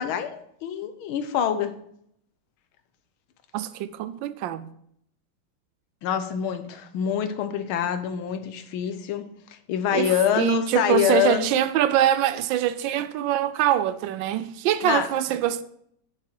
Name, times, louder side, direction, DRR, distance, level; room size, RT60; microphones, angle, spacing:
voice 1, 0.0-1.7 6.0-9.2 9.7-11.6 14.8-15.1, left 9 dB, 80° left, 1.6 m, -25 dB
voice 2, 3.5-4.7 9.9-15.6, right 11 dB, 75° right, 1.2 m, -24 dB
7.3 x 6.2 x 4.7 m
omnidirectional pair, 2.3 m